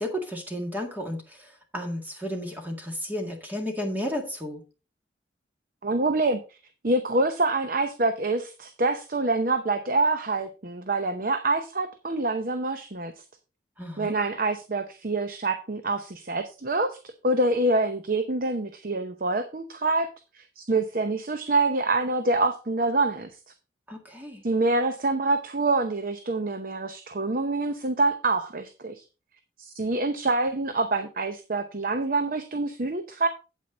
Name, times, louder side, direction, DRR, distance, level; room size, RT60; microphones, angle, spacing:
voice 1, 0.0-4.6 13.8-14.2 23.9-24.4, equal, 10° right, 2 dB, 1.9 m, -33 dB
voice 2, 5.8-6.6 6.8-13.1 14.0-20.1 20.3-23.3 24.4-29.0 29.6-33.3, right 2 dB, 50° right, 9 dB, 0.7 m, -26 dB
8.6 x 8.5 x 3.8 m, 0.31 s
head